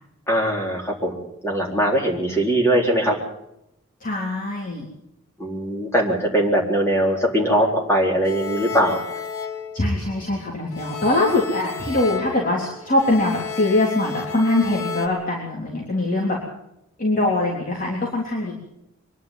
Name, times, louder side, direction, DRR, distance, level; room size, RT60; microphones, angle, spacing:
voice 1, 0.3-3.2 5.4-9.0, right 1 dB, 10° left, -1 dB, 3.9 m, -21 dB
voice 2, 4.0-4.9 9.7-16.4 17.0-18.6, left 2 dB, 40° left, -2 dB, 3.6 m, -22 dB
sound 1, 8.2-10.4 10.7-15.1, left 6 dB, 75° left, 2.1 m, -32 dB
24.5 x 11.5 x 9.3 m, 0.84 s
head